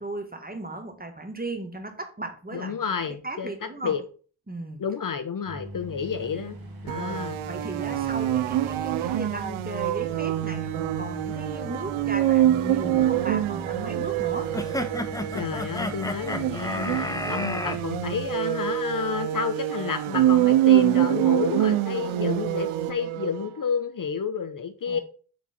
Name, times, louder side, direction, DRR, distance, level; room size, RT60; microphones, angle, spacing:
voice 1, 0.0-2.8 3.0-4.0 4.5-4.8 6.9-14.5 24.9-25.0, right 2 dB, 20° right, 1.7 m, -36 dB
voice 2, 2.5-4.0 4.8-6.6 6.8-7.4 15.3-25.0, left 6 dB, 40° left, 0.9 m, -30 dB
sound 1, 5.4-18.3, right 1 dB, 45° right, 2.0 m, -41 dB
sound 2, 6.9-23.5, right 12 dB, 90° right, 0.6 m, -25 dB
sound 3, 14.5-17.8, left 1 dB, 5° left, 1.0 m, -31 dB
6.9 x 4.8 x 4.3 m
cardioid pair, 60°, 48 cm